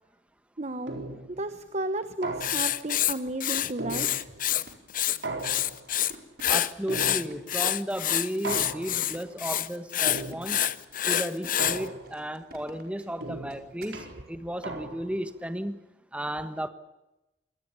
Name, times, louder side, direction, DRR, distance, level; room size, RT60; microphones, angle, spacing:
voice 1, 0.6-1.0 1.4-4.3, right 2 dB, 35° right, 10 dB, 1.1 m, -33 dB
sound 1, 0.9-1.4 2.2-2.9 3.8-4.5 5.2-6.0 6.9-7.6 8.4-9.2 10.1-10.7 11.6-12.3 13.2-15.2, right 2 dB, 80° right, 4.3 m, -37 dB
Writing, 2.4-4.6 4.9-6.1 6.4-11.8, left 11 dB, 45° left, 0.8 m, -27 dB
sound 2, 3.3-14.0, right 2 dB, 55° right, 5.0 m, -53 dB
voice 2, 6.5-10.6 11.1-15.8 16.1-16.7, equal, 5° right, 10 dB, 1.3 m, -34 dB
26.0 x 19.5 x 7.1 m, 0.96 s
head